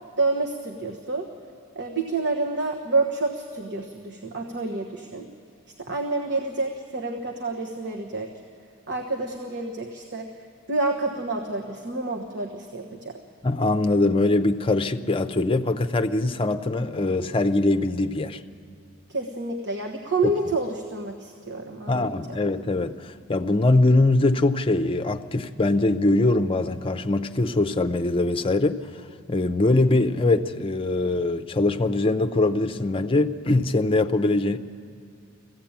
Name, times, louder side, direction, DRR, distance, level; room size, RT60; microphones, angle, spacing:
voice 1, 0.2-1.3 1.7-5.3 5.8-8.3 8.9-13.2 19.1-22.4, right 2 dB, 55° right, 1.2 m, -28 dB
voice 2, 13.4-18.4 21.9-28.8 29.3-34.6, left 2 dB, 25° left, 0.6 m, -22 dB
20.0 x 15.5 x 8.8 m
head